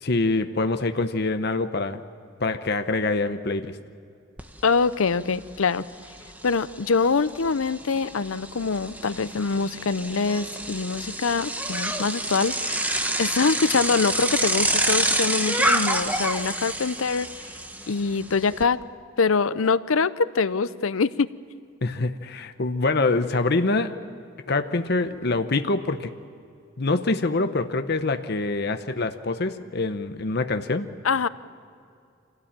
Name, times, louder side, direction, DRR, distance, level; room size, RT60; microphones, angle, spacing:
voice 1, 0.0-2.0 2.4-3.8 21.8-24.0 24.5-26.1 26.8-30.9, left 3 dB, 50° left, 8 dB, 0.9 m, -25 dB
Bicycle, 4.4-4.5 4.9-18.6, right 1 dB, 10° right, 1.0 m, -28 dB
voice 2, 4.6-5.8 6.4-17.3 17.9-18.8 19.2-21.3 31.0-31.3, left 4 dB, 75° left, 15 dB, 0.7 m, -24 dB
25.5 x 17.0 x 8.9 m, 2.5 s
head